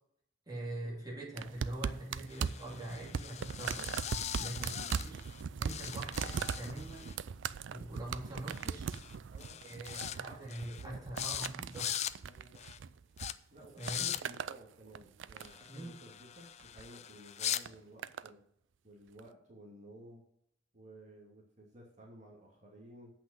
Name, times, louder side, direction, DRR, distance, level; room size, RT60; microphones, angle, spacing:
voice 1, 0.5-3.9 4.4-5.2 5.6-7.1 7.7-8.9 9.6-11.9 13.8-14.1 15.7-15.9, right 1 dB, 20° right, -4 dB, 2.6 m, -43 dB
sound 1, 1.4-13.3 13.6-14.6 15.0-15.7 16.6-16.9 17.7-18.3 19.2-19.3, right 6 dB, 70° right, 0.4 m, -40 dB
sound 2, 2.3-5.4 5.7-7.2 8.5-8.7 8.9-9.2 9.4-10.2 10.5-10.8 11.2-11.5 11.7-12.1 12.6-12.8 13.2-13.3 13.8-14.2 15.4-17.6, left 10 dB, 35° left, 0.4 m, -41 dB
voice 2, 4.5-5.0 9.3-9.7 10.0-11.0 12.2-12.6 13.5-18.4 18.8-20.2 20.7-23.1, right 1 dB, 40° right, -2 dB, 2.5 m, -54 dB
8.3 x 5.9 x 8.1 m, 0.69 s
head